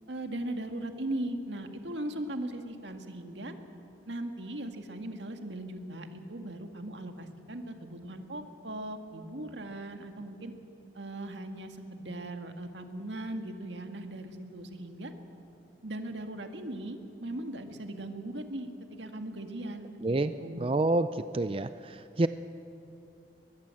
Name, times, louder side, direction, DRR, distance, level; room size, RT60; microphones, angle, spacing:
voice 1, 0.1-3.5 4.1-10.5 10.9-15.1 15.8-20.8, right 1 dB, 90° right, 5 dB, 2.0 m, -39 dB
voice 2, 20.0-20.3 20.6-21.1 21.3-21.7 22.2-22.3, right 2 dB, 30° right, 11 dB, 0.5 m, -26 dB
22.5 x 21.0 x 7.8 m, 2.8 s
head